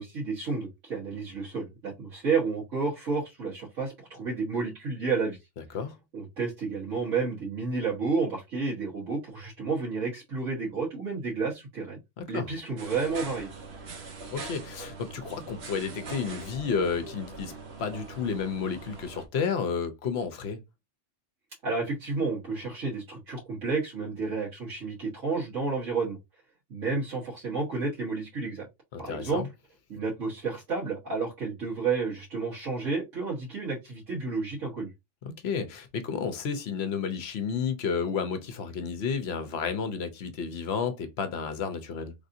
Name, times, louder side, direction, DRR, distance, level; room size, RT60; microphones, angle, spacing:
voice 1, 0.0-5.4 6.1-12.0 12.3-13.5 21.6-26.2 26.7-28.7 29.0-29.4 29.9-34.9, right 4 dB, 80° right, 1.6 m, -31 dB
voice 2, 12.2-12.5 14.3-20.6 28.9-29.5 35.2-42.1, left 6 dB, 65° left, 0.8 m, -31 dB
sound 1, 12.8-19.3, right 3 dB, 65° right, 1.0 m, -42 dB
3.4 x 2.5 x 2.6 m
omnidirectional pair, 1.3 m